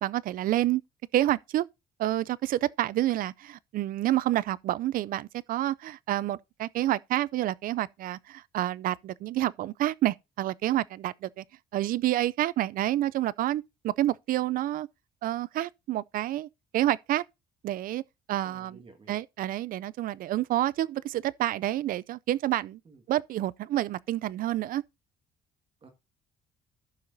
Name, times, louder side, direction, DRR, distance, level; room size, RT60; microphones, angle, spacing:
voice 1, 0.0-0.8 1.1-1.6 2.0-11.4 11.7-14.9 15.2-17.2 17.6-18.0 18.3-18.8 19.1-22.8 23.1-24.8, right 14 dB, 55° right, 0.4 m, -28 dB
voice 2, 18.4-19.2 22.8-23.0 25.8-25.9, right 3 dB, 35° right, 1.8 m, -53 dB
14.0 x 5.8 x 2.6 m
cardioid pair, 110°, 17 cm